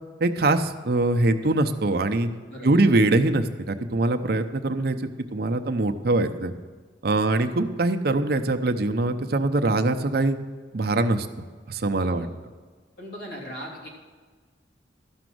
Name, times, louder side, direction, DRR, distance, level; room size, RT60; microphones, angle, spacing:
voice 1, 0.2-2.3 2.6-5.0 5.3-6.5 7.0-10.4 10.7-11.3 11.7-12.3, right 2 dB, 55° right, 7 dB, 0.6 m, -23 dB
voice 2, 2.5-2.8 11.9-12.3 13.0-13.9, equal, 70° left, -3 dB, 3.2 m, -38 dB
13.0 x 6.1 x 7.7 m, 1.5 s
head